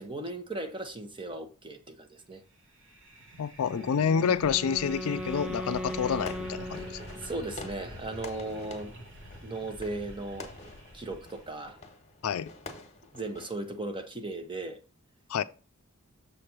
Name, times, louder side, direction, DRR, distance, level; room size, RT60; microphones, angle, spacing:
voice 1, 0.0-2.4 4.2-4.4 7.2-8.9 9.4-10.5 10.9-11.8 13.1-14.8, right 2 dB, 25° right, 0.9 m, -37 dB
sound 1, 2.6-11.8, equal, 60° right, 1.4 m, -47 dB
voice 2, 3.4-7.0 12.2-12.5 15.3-15.4, left 7 dB, 75° left, 0.4 m, -28 dB
Wind instrument woodwind instrument, 3.6-7.6, equal, 5° right, 0.4 m, -38 dB
Fireworks, 5.8-13.9, left 2 dB, 30° left, 1.3 m, -48 dB
6.8 x 3.3 x 5.9 m
head